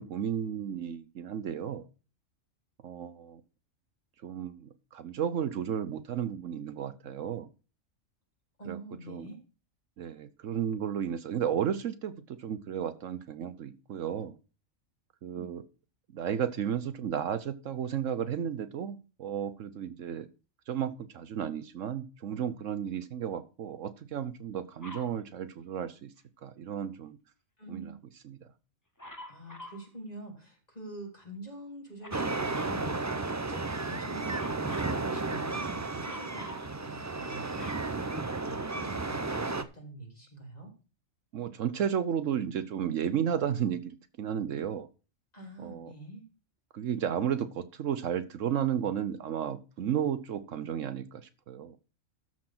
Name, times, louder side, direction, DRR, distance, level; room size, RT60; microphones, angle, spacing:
voice 1, 0.0-1.8 2.8-3.4 4.2-7.5 8.7-8.8 9.1-9.3 10.0-14.3 15.2-15.6 16.1-20.3 20.7-26.1 26.4-27.2 27.7-27.9 28.2-28.4 41.3-44.9 45.6-45.9 46.7-51.8, right 9 dB, 70° right, 12 dB, 1.1 m, -33 dB
voice 2, 8.6-9.4 15.3-15.5 27.6-28.0 29.3-33.2 33.5-37.8 38.4-40.7 45.3-46.2, right 2 dB, 30° left, 0 dB, 3.5 m, -46 dB
Dog, 24.8-25.2 29.0-29.9 32.0-32.8 34.3-35.0 36.0-36.7 37.2-38.7 39.5-39.6, left 1 dB, 15° left, 1.3 m, -46 dB
sound 1, 32.1-39.6, right 3 dB, 25° right, 0.3 m, -33 dB
13.5 x 4.7 x 5.9 m, 0.33 s
omnidirectional pair, 1.4 m